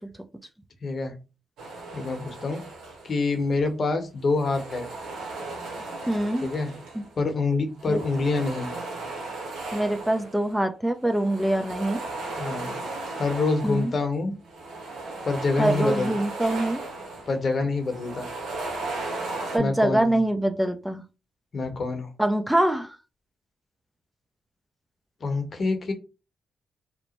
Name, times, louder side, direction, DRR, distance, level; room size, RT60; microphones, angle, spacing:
voice 1, 0.8-1.2 1.9-2.6 3.0-4.9 6.4-6.7 7.2-8.7 12.4-12.8 13.2-14.3 15.2-16.1 17.3-18.3 19.6-20.2 21.5-22.1 25.2-25.9, left 3 dB, 55° left, 5 dB, 0.9 m, -26 dB
sound 1, 1.6-3.4 4.2-7.2 7.8-10.5 11.0-14.0 14.4-17.4 17.7-19.6, right 2 dB, 80° right, 0.8 m, -36 dB
voice 2, 6.1-6.5 7.9-8.0 9.7-12.0 13.6-13.9 15.6-16.8 19.5-21.0 22.2-22.9, right 1 dB, 5° right, 6 dB, 0.5 m, -24 dB
2.9 x 2.1 x 4.1 m, 0.30 s
supercardioid pair, 50°, 0 cm